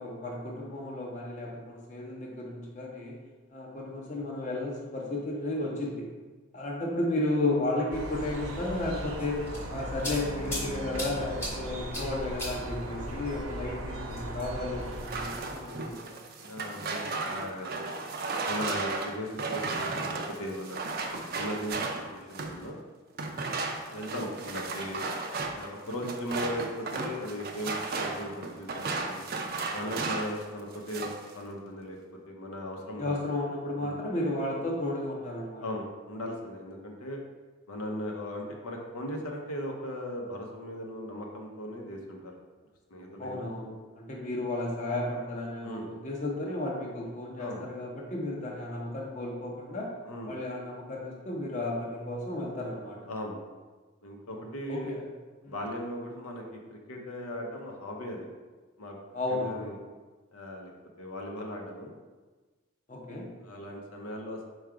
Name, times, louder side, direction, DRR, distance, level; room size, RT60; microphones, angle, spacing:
voice 1, 0.0-3.2 3.5-6.1 6.5-9.4 9.7-16.0 33.0-35.6 43.2-49.9 50.3-53.0 54.3-55.0 55.4-55.5 59.1-59.7 62.9-63.3, left 2 dB, 35° left, -2 dB, 0.7 m, -33 dB
sound 1, 7.9-15.9, right 1 dB, 70° right, 0.7 m, -38 dB
sound 2, 9.2-10.7 11.0-11.5 11.9-12.1 12.4-12.5 14.1-14.6, equal, 10° left, 0.9 m, -36 dB
sound 3, 14.9-22.6 23.1-30.4 30.7-31.3, right 3 dB, 45° right, 0.4 m, -34 dB
voice 2, 16.4-18.0 18.5-20.8 21.3-22.8 23.9-25.0 25.5-29.2 29.7-32.0 32.3-33.4 33.8-34.0 35.6-37.2 37.7-42.3 42.9-43.6 45.6-45.9 47.4-47.7 50.0-50.3 53.1-53.4 54.0-55.0 55.5-58.2 58.8-59.0 59.3-59.8 60.3-60.7 61.0-61.9 63.4-64.5, left 1 dB, 90° left, 1 dB, 0.7 m, -38 dB
4.6 x 2.3 x 4.7 m, 1.3 s
head